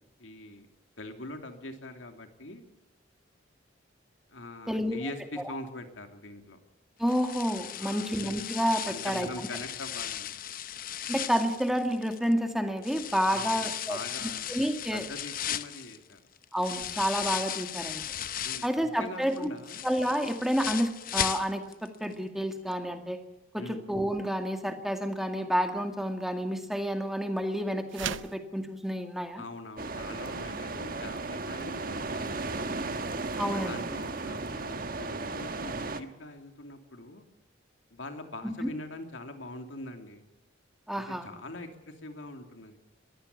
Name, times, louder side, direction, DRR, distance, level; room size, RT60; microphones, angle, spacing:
voice 1, 0.2-0.7 1.0-2.7 4.3-6.6 7.8-8.2 8.9-10.3 13.3-14.5 14.9-16.2 18.4-19.9 23.6-23.8 29.3-32.9 33.7-37.3 37.9-40.2 41.2-42.8, left 2 dB, 85° left, 6 dB, 2.9 m, -43 dB
voice 2, 4.7-5.0 7.0-9.5 11.1-14.0 14.5-15.1 16.5-18.0 18.6-19.5 19.8-23.2 23.5-29.4 33.4-33.8 38.4-38.7 40.9-41.3, equal, ahead, 6 dB, 2.0 m, -29 dB
sound 1, 7.1-12.3 12.8-18.8 19.2-21.9 22.1-22.2 22.7-22.8, left 10 dB, 45° left, 0.8 m, -36 dB
sound 2, 27.9-28.4, right 8 dB, 85° right, 0.8 m, -35 dB
sound 3, 29.8-36.0, right 3 dB, 50° right, 1.4 m, -35 dB
22.5 x 15.0 x 8.5 m, 0.95 s
head